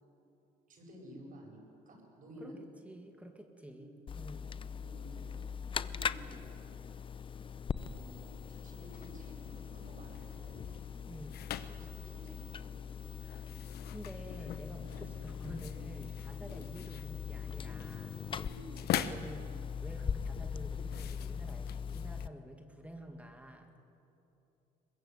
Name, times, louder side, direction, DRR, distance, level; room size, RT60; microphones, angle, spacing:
voice 1, 0.7-2.5 3.6-3.9 4.8-5.4 5.8-6.6 7.7-10.6 11.7-12.7 14.7-15.2 15.6-15.9 16.3-16.6 18.4-18.7, right 1 dB, 50° right, 0 dB, 7.9 m, -53 dB
voice 2, 2.8-4.5 11.1-11.4 13.9-18.2 18.8-23.7, right 1 dB, 10° right, 4 dB, 2.2 m, -49 dB
sound 1, 4.1-22.3, left 7 dB, 30° left, 0.6 m, -41 dB
sound 2, 8.9-22.3, left 10 dB, 70° left, 1.1 m, -44 dB
23.0 x 21.0 x 8.1 m, 3.0 s
cardioid pair, 110°, 17 cm